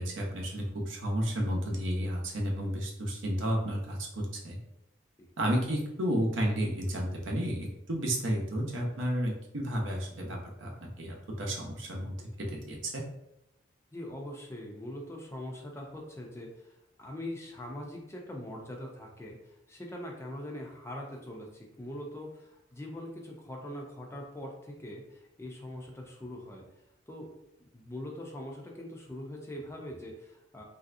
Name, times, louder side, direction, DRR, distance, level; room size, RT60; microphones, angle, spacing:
voice 1, 0.0-4.6 5.4-13.0, equal, 80° right, 0 dB, 0.7 m, -32 dB
voice 2, 13.9-26.7 27.1-27.3 27.6-30.6, left 1 dB, 15° left, 0 dB, 0.4 m, -42 dB
3.2 x 2.6 x 2.5 m, 0.82 s
head